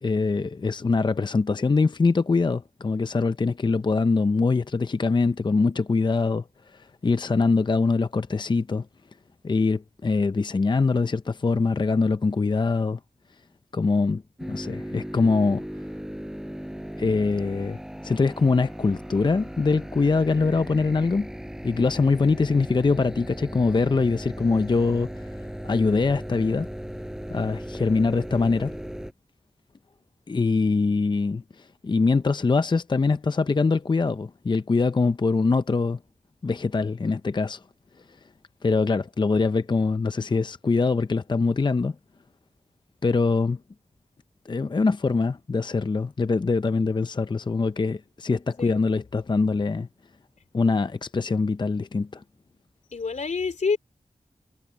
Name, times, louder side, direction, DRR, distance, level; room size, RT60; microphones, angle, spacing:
voice 1, 0.0-8.9 9.4-13.0 13.7-14.2 14.5-15.6 17.0-21.3 21.6-25.3 25.6-26.7 27.3-28.7 30.3-36.0 36.4-37.6 38.6-42.0 43.0-43.6 44.5-49.9 50.5-52.2, left 4 dB, 40° left, 0.5 m, -23 dB
sound 1, 14.4-29.1, equal, 5° right, 4.7 m, -37 dB
voice 2, 52.9-53.8, left 5 dB, 80° left, 3.6 m, -28 dB
wide cardioid pair, 60°, 12 cm